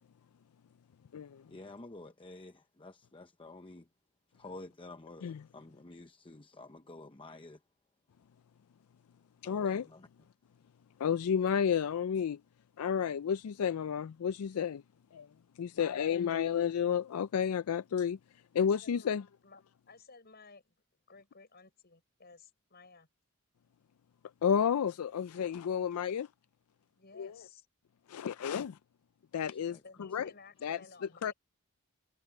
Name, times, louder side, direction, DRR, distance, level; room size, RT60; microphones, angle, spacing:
voice 1, 1.5-3.9 4.3-7.6 9.4-10.1 29.5-29.8, left 2 dB, 25° left, 0.8 m, -50 dB
voice 2, 9.4-9.9 11.0-12.4 12.8-14.8 15.1-15.3 15.6-18.2 18.5-19.2 24.4-26.3 27.2-27.4 28.1-28.8 29.3-30.3 30.6-30.8 31.2-31.3, left 7 dB, 80° left, 0.4 m, -31 dB
voice 3, 18.6-20.7 21.1-23.1 27.0-27.7 29.8-31.3, left 4 dB, 45° left, 6.7 m, -56 dB
head